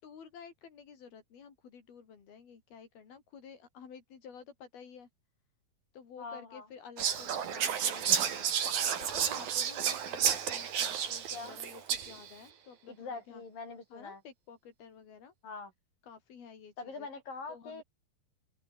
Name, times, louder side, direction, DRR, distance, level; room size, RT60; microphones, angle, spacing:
voice 1, 0.0-5.1 5.9-13.4 13.9-15.3 16.0-17.1 17.5-17.8, left 7 dB, 85° left, 5.9 m, -52 dB
voice 2, 6.2-6.7 11.3-11.6 12.9-14.2 15.4-15.7 16.8-17.8, left 4 dB, 65° left, 9.5 m, -43 dB
Whispering, 7.0-12.3, right 8 dB, 75° right, 4.6 m, -31 dB
open air
omnidirectional pair, 4.2 m